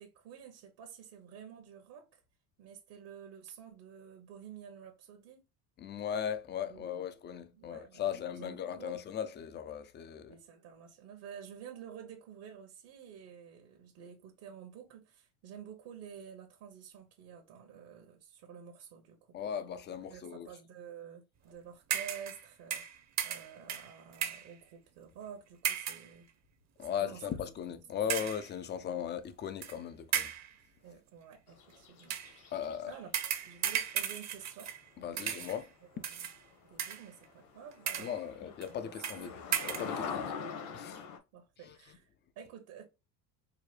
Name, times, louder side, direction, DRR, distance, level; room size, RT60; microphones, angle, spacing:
voice 1, 0.0-2.2 2.6-5.4 6.7-7.1 7.5-9.0 10.2-19.2 19.9-22.8 23.2-26.3 26.9-27.4 28.8-28.9 30.8-32.5 32.9-33.1 33.4-35.4 35.9-36.3 36.6-38.1 38.8-39.3 39.9-40.2 41.3-42.1 42.4-42.9, right 8 dB, 60° right, 1.0 m, -50 dB
voice 2, 5.8-10.3 19.3-20.5 26.8-30.3 32.5-32.9 35.0-35.7 36.0-36.1 38.0-39.3 39.7-40.2 40.7-41.0 41.6-41.8, left 8 dB, 25° left, 0.4 m, -38 dB
sound 1, 21.9-22.4 22.7-24.5 25.6-26.1 26.8-27.0 28.1-28.5 29.6-29.7 30.1-30.5 32.0-32.4 33.1-34.9 35.2-35.6 36.0-36.4 36.8-37.2 37.7-38.2 38.6-38.7 39.0-39.2 39.5-39.9, right 9 dB, 40° right, 0.7 m, -35 dB
sound 2, 31.5-33.0 36.5-36.6 37.1-37.2 37.4-41.2, left 6 dB, 60° left, 1.1 m, -42 dB
4.7 x 2.1 x 3.1 m
supercardioid pair, 120°, 44 cm